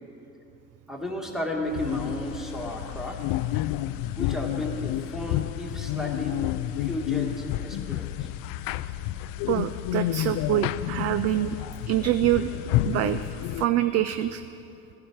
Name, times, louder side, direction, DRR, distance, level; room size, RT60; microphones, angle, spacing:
voice 1, 0.9-3.2 4.2-6.3 6.8-8.3, left 1 dB, ahead, 0 dB, 1.9 m, -33 dB
sound 1, 1.7-13.7, left 14 dB, 50° left, 0.5 m, -30 dB
voice 2, 9.5-11.6 11.9-12.5 12.8-13.2 13.6-14.4, right 13 dB, 40° right, 12 dB, 0.4 m, -25 dB
15.0 x 10.5 x 4.6 m, 2.8 s
hypercardioid pair, 60°, 44 cm